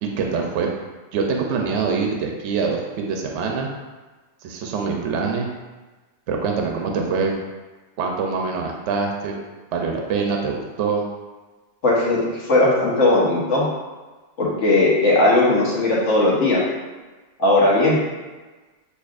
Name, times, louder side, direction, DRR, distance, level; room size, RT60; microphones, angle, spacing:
voice 1, 0.0-0.7 1.1-3.7 4.4-5.5 6.3-7.3 8.0-9.3 9.7-11.0, right 5 dB, 70° right, 1 dB, 0.9 m, -24 dB
voice 2, 11.8-13.7 14.4-16.6 17.4-18.0, left 2 dB, 70° left, -6 dB, 1.5 m, -18 dB
6.5 x 2.8 x 2.4 m, 1.3 s
omnidirectional pair, 1.3 m